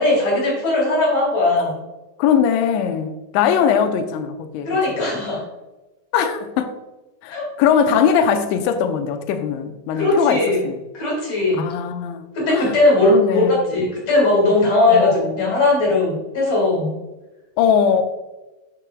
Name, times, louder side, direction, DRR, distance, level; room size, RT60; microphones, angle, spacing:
voice 1, 0.0-1.8 4.7-5.4 7.3-7.5 7.9-8.0 9.9-10.6 10.9-11.7 12.3-16.9, left 2 dB, 45° left, -3 dB, 2.5 m, -18 dB
voice 2, 2.2-4.7 6.1-6.8 7.2-10.8 11.5-12.8 13.1-13.9 14.9-15.5 17.6-18.0, left 7 dB, 85° left, 7 dB, 2.8 m, -20 dB
9.8 x 6.2 x 2.3 m, 1.1 s
omnidirectional pair, 5.3 m